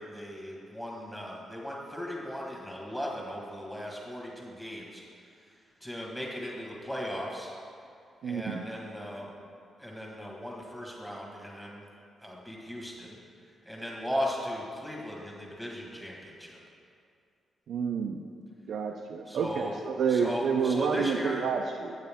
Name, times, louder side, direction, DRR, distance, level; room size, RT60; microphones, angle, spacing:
voice 1, 0.0-5.0 5.4-7.5 8.2-9.3 9.8-11.9 12.2-13.2 13.6-16.6 19.3-19.8 20.1-21.4, equal, 5° left, -3 dB, 1.5 m, -37 dB
voice 2, 8.2-8.7 17.7-18.2 18.7-21.9, right 6 dB, 70° right, 2 dB, 0.4 m, -29 dB
9.0 x 7.8 x 3.5 m, 2.3 s
wide cardioid pair, 145°, 0 cm